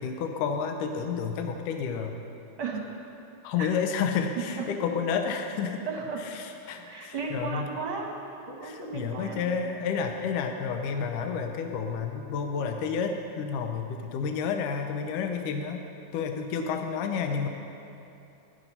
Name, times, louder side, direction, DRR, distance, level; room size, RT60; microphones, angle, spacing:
voice 1, 0.0-2.2 3.4-5.9 6.3-7.7 8.6-15.8 16.1-17.5, left 6 dB, 80° left, 4 dB, 2.3 m, -30 dB
voice 2, 2.6-2.9 3.6-3.7 4.4-4.7 5.9-6.2 6.9-9.4, right 5 dB, 55° right, 0 dB, 1.5 m, -35 dB
16.5 x 11.0 x 5.6 m, 2.8 s
omnidirectional pair, 3.7 m